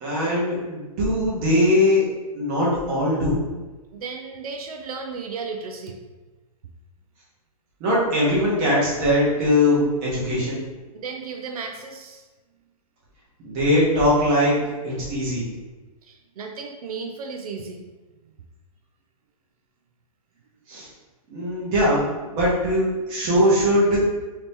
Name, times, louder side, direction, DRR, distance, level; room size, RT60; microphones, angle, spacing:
voice 1, 0.0-2.0 2.3-3.4 7.8-10.6 13.4-14.6 14.8-15.5 20.7-20.9 21.3-22.0 22.3-24.0, left 1 dB, 20° right, -7 dB, 0.9 m, -21 dB
voice 2, 3.9-6.0 10.9-12.2 16.0-17.9 23.4-23.5, right 4 dB, 75° right, 4 dB, 0.4 m, -34 dB
2.9 x 2.8 x 3.4 m, 1.2 s
hypercardioid pair, 175°, 19 cm